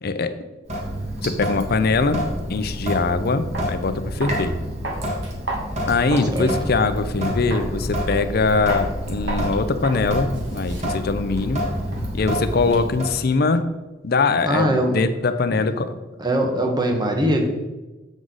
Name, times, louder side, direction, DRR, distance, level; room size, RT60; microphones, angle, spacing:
voice 1, 0.0-0.4 1.2-4.6 5.9-11.6 12.1-13.6 14.0-15.9, left 3 dB, 55° left, 10 dB, 0.6 m, -22 dB
Sink (filling or washing) / Drip, 0.7-13.1, equal, 40° right, 1.6 m, -28 dB
sound 1, 3.5-3.7 4.2-4.5 4.8-6.4 6.7-6.9 7.5-7.7 8.1-8.4 8.7-8.9 9.3-9.5 9.8-10.0 10.3-12.3, right 2 dB, 75° right, 1.8 m, -33 dB
voice 2, 14.4-15.0 15.5-15.6 16.2-17.5, right 1 dB, 25° right, 2 dB, 1.1 m, -21 dB
7.8 x 6.2 x 4.0 m, 1.1 s
head